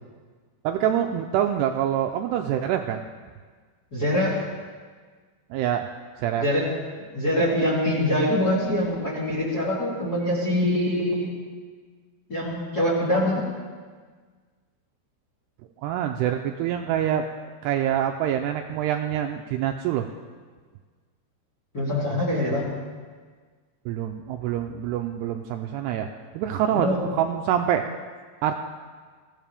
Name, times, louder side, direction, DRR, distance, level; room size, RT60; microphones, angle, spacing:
voice 1, 0.6-3.0 5.5-5.9 6.2-6.5 15.8-17.2 17.6-20.1 23.9-26.1 26.3-27.8 28.4-28.5, right 10 dB, 85° right, 4 dB, 2.4 m, -25 dB
voice 2, 3.9-4.4 6.4-6.7 7.1-11.3 12.3-13.4 21.7-22.7 26.7-27.1, left 1 dB, 25° left, -5 dB, 3.0 m, -24 dB
22.5 x 15.5 x 3.5 m, 1.5 s
omnidirectional pair, 5.4 m